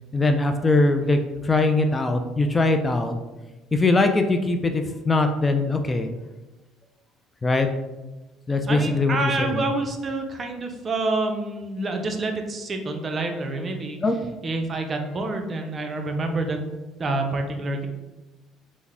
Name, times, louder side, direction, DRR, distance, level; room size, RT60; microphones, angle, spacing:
voice 1, 0.1-3.1 3.7-6.1 7.4-7.7 8.5-9.7 14.0-14.3, left 2 dB, 20° left, 6 dB, 0.3 m, -21 dB
voice 2, 8.7-14.0 14.4-16.6 17.0-17.9, right 2 dB, 35° right, 4 dB, 0.5 m, -27 dB
3.5 x 2.1 x 3.3 m, 1.1 s
supercardioid pair, 85°, 0 cm